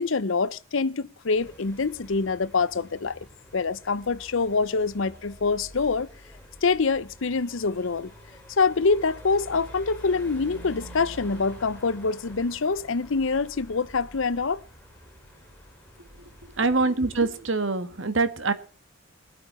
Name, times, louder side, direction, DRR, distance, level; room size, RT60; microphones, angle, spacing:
voice 1, 0.0-3.2 3.5-6.1 6.6-8.1 8.6-14.6, left 4 dB, 70° left, 0.7 m, -25 dB
sound 1, 1.4-17.4, equal, 5° left, 5.2 m, -47 dB
voice 2, 16.6-18.5, right 3 dB, 70° right, 1.5 m, -24 dB
21.5 x 8.6 x 4.3 m
head